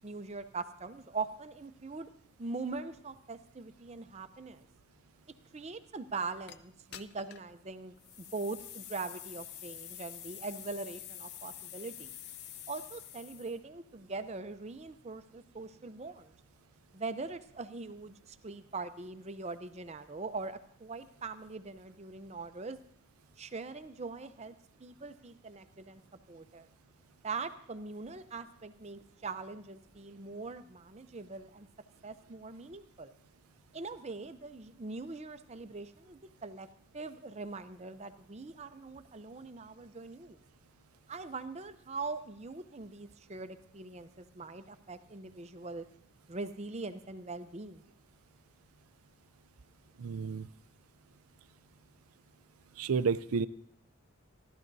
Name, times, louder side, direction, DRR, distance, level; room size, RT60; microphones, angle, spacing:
voice 1, 0.0-2.1 2.4-4.7 5.5-12.1 12.7-16.3 16.9-22.8 23.4-26.0 26.3-26.7 27.2-31.7 32.0-33.1 33.7-36.7 36.9-40.4 41.1-45.9 46.3-47.8, right 3 dB, 30° right, 10 dB, 0.6 m, -42 dB
sound 1, 6.5-6.6 6.9-7.5 8.0-13.6, left 11 dB, 50° left, 0.5 m, -47 dB
voice 2, 50.0-50.5 52.8-53.5, right 5 dB, 85° right, 14 dB, 0.5 m, -30 dB
29.0 x 12.0 x 2.7 m, 0.69 s
head